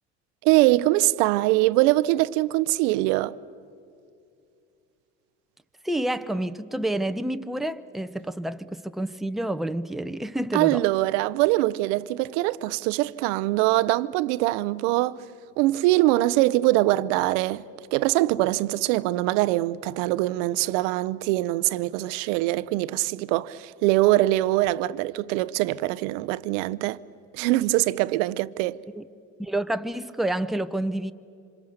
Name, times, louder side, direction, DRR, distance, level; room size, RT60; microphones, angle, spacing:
voice 1, 0.4-3.4 10.5-15.2 15.6-17.6 17.9-27.0 27.3-28.8, right 18 dB, 80° right, 0.7 m, -23 dB
voice 2, 5.8-10.8 29.0-29.1 29.4-31.1, right 1 dB, ahead, 0.8 m, -29 dB
27.0 x 26.0 x 6.6 m
hypercardioid pair, 70°, 36 cm